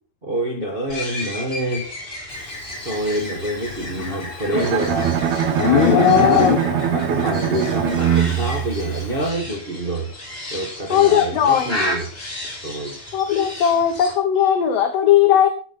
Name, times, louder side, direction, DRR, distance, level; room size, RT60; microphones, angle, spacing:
voice 1, 0.2-1.9 2.8-5.2 5.6-10.1 10.5-12.1 12.6-13.0, right 1 dB, 45° right, 0.7 m, -26 dB
sound 1, 0.9-14.1, left 1 dB, 20° left, 4.8 m, -33 dB
Livestock farm animals working animals, 3.8-7.0, left 9 dB, 80° left, 2.8 m, -19 dB
Bowed string instrument, 4.5-9.6, right 10 dB, 70° right, 2.2 m, -22 dB
voice 2, 10.9-11.8 13.1-15.5, left 9 dB, 60° left, 2.1 m, -17 dB
14.5 x 8.8 x 5.4 m
omnidirectional pair, 3.4 m